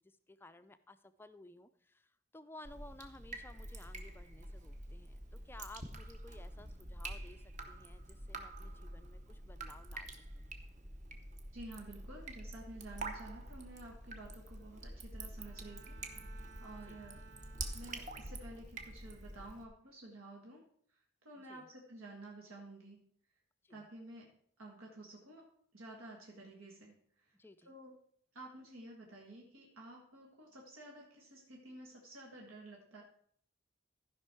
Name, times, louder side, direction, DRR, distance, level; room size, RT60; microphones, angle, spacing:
voice 1, 0.0-10.5 16.9-17.1 21.4-21.7 23.6-23.9 27.3-27.7, left 2 dB, 10° left, 11 dB, 0.4 m, -56 dB
Drip, 2.6-19.6, right 2 dB, 35° right, 0.9 m, -47 dB
voice 2, 11.5-17.2 17.7-20.6 20.9-23.1 23.7-27.4 27.7-27.9 28.3-33.0, right 1 dB, 85° right, -2 dB, 1.8 m, -52 dB
Bowed string instrument, 15.3-18.5, right 6 dB, 55° right, 0.6 m, -60 dB
14.5 x 5.4 x 4.4 m, 0.62 s
head